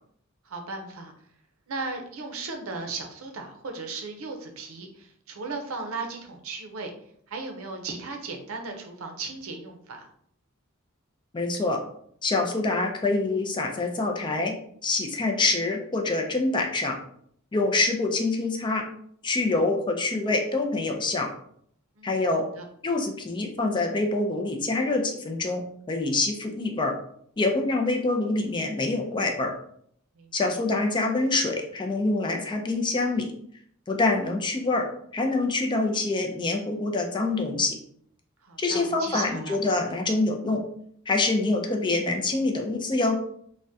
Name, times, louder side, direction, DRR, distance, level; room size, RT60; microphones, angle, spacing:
voice 1, 0.5-1.1 1.7-6.9 7.3-10.1 22.0-22.1 30.2-30.5 38.4-39.6, right 3 dB, 75° right, 3 dB, 0.6 m, -36 dB
voice 2, 11.3-11.8 12.2-14.5 14.8-17.0 17.5-18.8 19.2-21.3 22.0-22.5 22.8-25.6 25.9-26.9 27.4-29.5 30.3-33.3 33.9-37.8 38.6-40.6 41.1-43.2, left 3 dB, 20° left, 2 dB, 0.4 m, -25 dB
3.5 x 2.1 x 2.6 m, 0.66 s
head